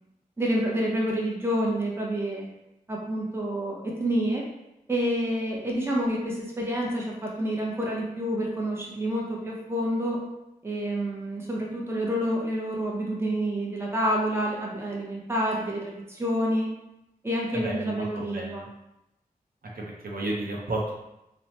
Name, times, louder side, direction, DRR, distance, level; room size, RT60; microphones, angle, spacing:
voice 1, 0.4-2.5 2.9-4.5 4.9-10.2 10.6-16.7 17.2-18.7, equal, 15° right, -3 dB, 0.6 m, -28 dB
voice 2, 17.6-18.7 19.7-20.9, right 2 dB, 70° right, -3 dB, 0.6 m, -32 dB
3.0 x 2.0 x 2.8 m, 0.88 s
wide cardioid pair, 70°, 15 cm